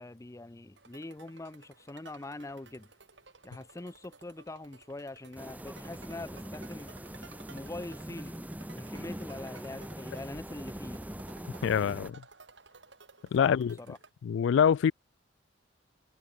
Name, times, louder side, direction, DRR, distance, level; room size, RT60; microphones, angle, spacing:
voice 1, 0.0-2.9 3.4-6.9 7.5-8.4 8.7-11.0 13.4-14.0, left 2 dB, 15° left, 0.5 m, -43 dB
sound 1, 0.8-14.1, right 4 dB, 75° right, 7.9 m, -56 dB
sound 2, 5.3-12.1, equal, 10° right, 1.6 m, -42 dB
voice 2, 11.6-12.2 13.3-13.7 14.2-14.9, left 7 dB, 85° left, 0.3 m, -25 dB
head